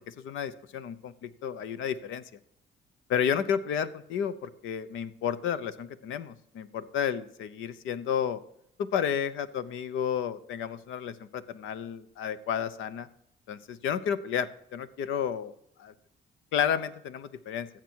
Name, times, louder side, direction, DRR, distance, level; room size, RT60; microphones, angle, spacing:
voice 1, 0.1-2.2 3.1-8.4 8.8-13.1 13.5-15.5 15.8-15.9 16.5-17.7, left 8 dB, 85° left, 14 dB, 0.8 m, -31 dB
15.0 x 7.6 x 4.6 m, 0.77 s
cardioid pair, 90°, 20 cm